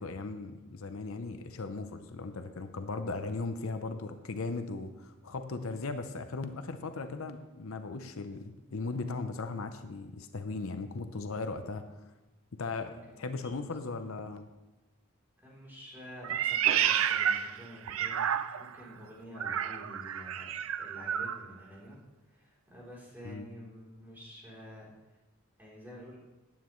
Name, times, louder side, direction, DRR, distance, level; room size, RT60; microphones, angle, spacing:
voice 1, 0.0-11.9 12.5-14.5 23.2-23.5, left 3 dB, 80° left, 8 dB, 0.7 m, -37 dB
voice 2, 12.9-13.2 13.7-13.9 15.4-22.0 22.3-24.9 25.6-26.2, equal, 10° right, -5 dB, 3.5 m, -49 dB
Meow, 16.2-18.8 19.4-21.4, right 9 dB, 75° right, 0.4 m, -30 dB
14.5 x 9.3 x 3.1 m, 1.1 s
head